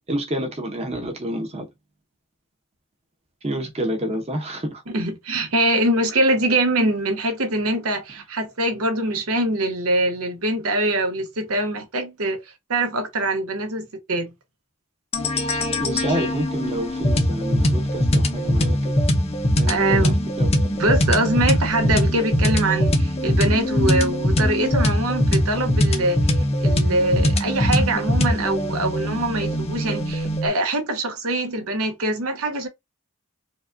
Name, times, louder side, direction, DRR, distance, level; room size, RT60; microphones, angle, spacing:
voice 1, 0.1-1.7 3.4-4.8 15.7-19.1 19.5-20.8, right 1 dB, 30° right, 0.8 m, -29 dB
voice 2, 4.9-12.4 12.7-14.3 19.7-20.2 20.8-32.7, right 1 dB, 80° right, 1.0 m, -23 dB
sound 1, 15.1-30.5, equal, 30° left, 0.5 m, -21 dB
4.7 x 2.3 x 2.6 m
head